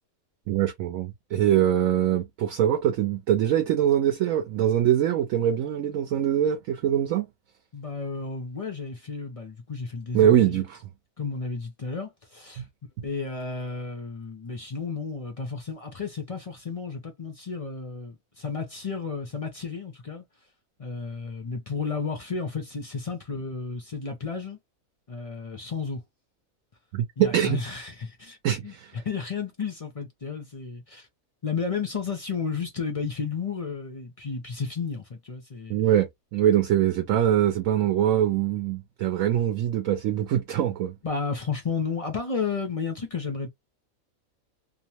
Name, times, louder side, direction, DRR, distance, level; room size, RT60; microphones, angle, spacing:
voice 1, 0.5-7.3 10.1-10.8 12.6-12.7 26.9-27.6 28.4-28.9 35.7-40.9, right 11 dB, 70° right, 1.0 m, -23 dB
voice 2, 7.7-10.7 11.2-12.6 13.0-20.2 20.8-24.6 25.1-26.0 27.2-28.4 28.6-31.1 31.4-35.8 41.0-43.5, left 5 dB, 40° left, 0.5 m, -32 dB
2.9 x 2.0 x 2.8 m
omnidirectional pair, 1.5 m